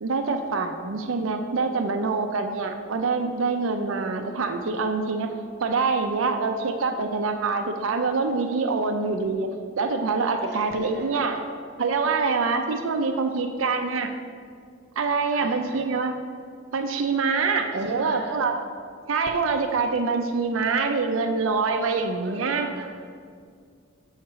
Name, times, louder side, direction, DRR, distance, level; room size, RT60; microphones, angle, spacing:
voice 1, 0.0-5.3 5.6-11.4 11.8-14.1 15.0-16.1 16.7-18.6 19.1-22.7, right 4 dB, 80° right, 6 dB, 0.5 m, -25 dB
voice 2, 10.4-11.4 15.3-15.9 17.7-18.4 22.2-22.8, right 1 dB, 55° right, 2 dB, 1.0 m, -41 dB
6.4 x 4.7 x 6.0 m, 2.2 s
head